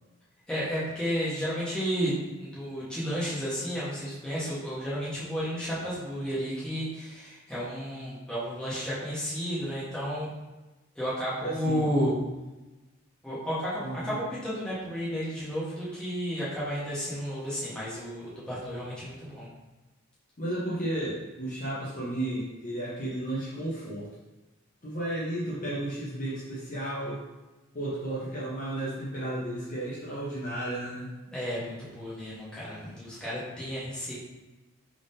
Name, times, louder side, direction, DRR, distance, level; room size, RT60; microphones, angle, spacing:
voice 1, 0.5-2.1 2.4-10.3 10.9-12.1 13.2-19.5 31.3-34.2, equal, 5° left, -10 dB, 1.1 m, -32 dB
voice 2, 11.4-11.8 13.8-14.2 20.4-24.1 24.8-27.2 27.7-31.1, right 1 dB, 35° left, -8 dB, 0.8 m, -33 dB
3.6 x 3.5 x 2.6 m, 1.1 s
head